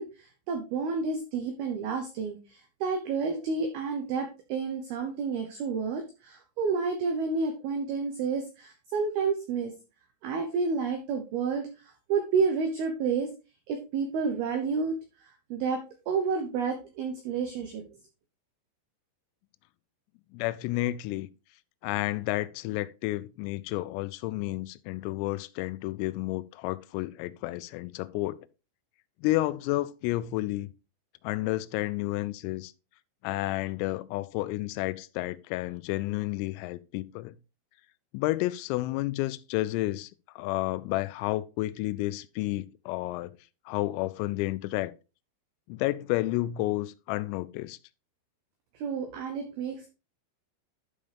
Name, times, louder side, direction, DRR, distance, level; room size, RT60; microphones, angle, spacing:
voice 1, 0.0-9.7 10.2-11.7 12.1-13.3 13.7-15.0 15.5-17.8 48.8-49.9, right 5 dB, 85° right, 2.2 m, -30 dB
voice 2, 20.3-21.3 21.8-28.5 29.2-30.7 31.2-32.7 33.2-37.3 38.1-40.1 40.4-43.3 43.7-44.9 45.7-47.8, left 17 dB, 90° left, 3.2 m, -31 dB
11.5 x 5.4 x 3.3 m
omnidirectional pair, 5.8 m